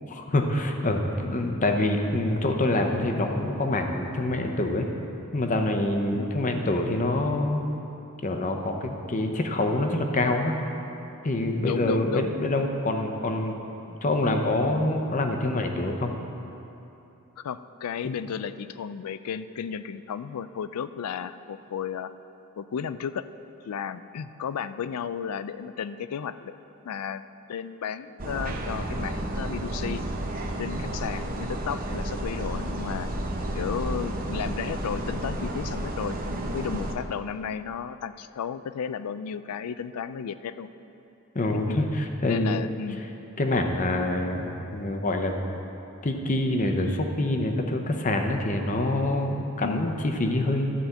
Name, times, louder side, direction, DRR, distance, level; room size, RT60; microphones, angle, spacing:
voice 1, 0.1-4.9 5.3-7.7 8.2-10.6 11.2-13.6 13.9-16.1 41.3-42.6 43.4-45.4 46.0-50.7, left 1 dB, 35° left, 4 dB, 0.7 m, -26 dB
voice 2, 11.6-12.3 17.4-22.1 22.6-23.3 23.6-26.6 26.8-27.2 27.5-30.0 30.6-33.1 33.5-36.2 36.5-40.7 41.7-41.8 42.3-43.0 49.6-50.0, left 7 dB, 85° left, 14 dB, 0.4 m, -33 dB
sound 1, 28.2-36.9, right 1 dB, 40° right, 0.8 m, -31 dB
12.5 x 4.3 x 7.8 m, 2.9 s
head